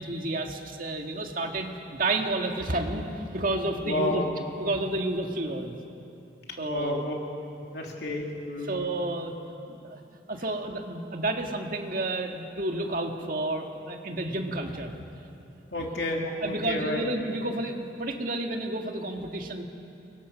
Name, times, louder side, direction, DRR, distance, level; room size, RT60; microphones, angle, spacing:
voice 1, 0.0-4.2 4.6-5.8 6.6-7.0 7.6-7.7 8.6-9.3 9.7-10.0 10.3-14.9 15.8-15.9 16.4-19.6, right 2 dB, 50° right, 3 dB, 1.9 m, -31 dB
voice 2, 3.8-4.3 6.6-7.1 7.5-8.7 15.7-17.1, left 1 dB, 70° left, 0 dB, 3.4 m, -31 dB
29.5 x 22.0 x 6.3 m, 2.7 s
head